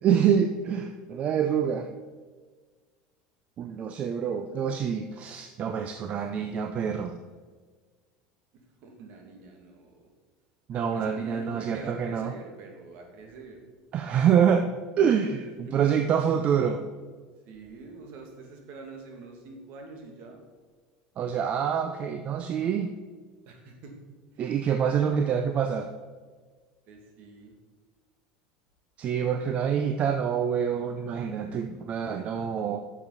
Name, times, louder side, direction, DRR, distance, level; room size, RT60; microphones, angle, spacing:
voice 1, 0.0-1.9 3.6-7.2 10.7-12.3 13.9-14.7 15.0-16.8 21.2-22.9 24.4-25.9 29.0-32.8, right 8 dB, 40° right, 6 dB, 0.6 m, -26 dB
voice 2, 8.8-10.1 10.7-13.6 15.6-15.9 17.4-20.4 23.5-23.9 24.3-24.5 26.9-27.5 32.0-32.7, right 3 dB, 60° right, 1 dB, 2.4 m, -46 dB
10.5 x 7.1 x 4.2 m, 1.5 s
supercardioid pair, 110°, 3 cm